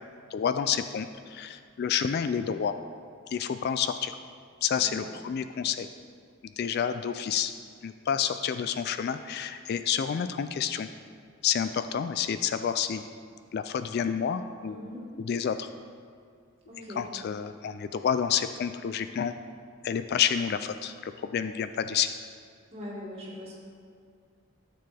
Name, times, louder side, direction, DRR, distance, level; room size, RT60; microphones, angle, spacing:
voice 1, 0.3-2.8 3.3-4.2 4.6-5.9 6.6-7.5 7.8-10.9 11.4-13.0 13.5-14.8 15.2-15.7 17.0-19.4 19.8-22.1, left 8 dB, 50° left, 10 dB, 0.3 m, -29 dB
voice 2, 4.7-5.1 14.7-15.0 16.7-17.0 22.7-23.6, left 1 dB, 30° right, -6 dB, 2.1 m, -41 dB
12.5 x 6.8 x 3.4 m, 2.2 s
head